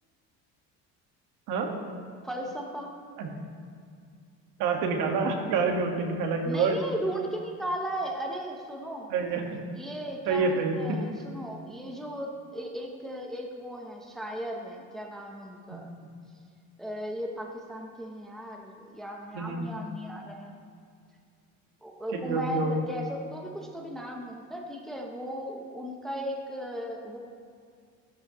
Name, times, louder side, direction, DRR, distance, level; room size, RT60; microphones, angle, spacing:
voice 1, 2.2-2.9 6.4-9.1 9.7-15.9 16.8-20.5 21.8-27.2, equal, ahead, 0 dB, 0.7 m, -36 dB
voice 2, 4.6-6.8 9.1-9.6 10.3-11.0 15.7-15.8 19.3-19.7 22.1-22.8, right 4 dB, 70° right, 2 dB, 1.6 m, -27 dB
14.5 x 12.0 x 3.0 m, 2.2 s
cardioid pair, 175°, 32 cm